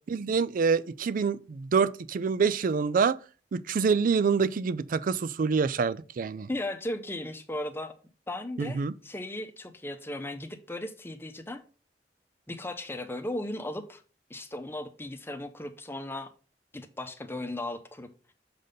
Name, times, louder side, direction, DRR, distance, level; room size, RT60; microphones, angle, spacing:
voice 1, 0.1-3.2 3.5-6.5 8.6-8.9, right 5 dB, 50° right, 0.4 m, -26 dB
voice 2, 6.5-7.9 8.3-11.6 12.5-14.0 14.3-16.3 16.7-18.1, left 1 dB, 15° left, 0.7 m, -36 dB
6.5 x 4.1 x 5.1 m
head